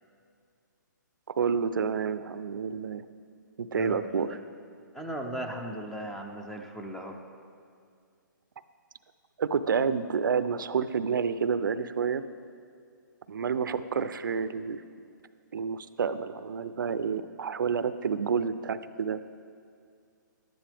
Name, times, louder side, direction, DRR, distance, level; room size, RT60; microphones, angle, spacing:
voice 1, 1.3-3.0 3.6-4.4 9.4-12.2 13.3-14.8 15.5-19.2, right 6 dB, 80° right, 13 dB, 0.5 m, -29 dB
voice 2, 3.7-4.4 4.9-7.2, equal, 5° left, 2 dB, 0.4 m, -37 dB
12.0 x 10.0 x 3.4 m, 2.3 s
hypercardioid pair, 160°, 11 cm